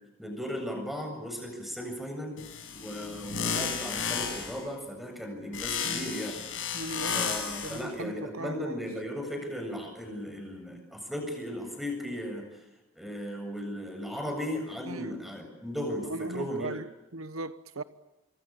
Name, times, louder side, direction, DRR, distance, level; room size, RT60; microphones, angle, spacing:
voice 1, 0.2-2.4 2.7-6.4 7.1-12.5 13.0-16.8, equal, ahead, 7.6 m, -36 dB
sound 1, 2.4-4.6 5.5-7.8, left 6 dB, 65° left, 7.9 m, -33 dB
voice 2, 6.7-7.3 7.6-8.8 14.9-15.2 16.0-16.8 17.1-17.8, right 2 dB, 80° right, 1.1 m, -38 dB
26.0 x 23.5 x 8.8 m
head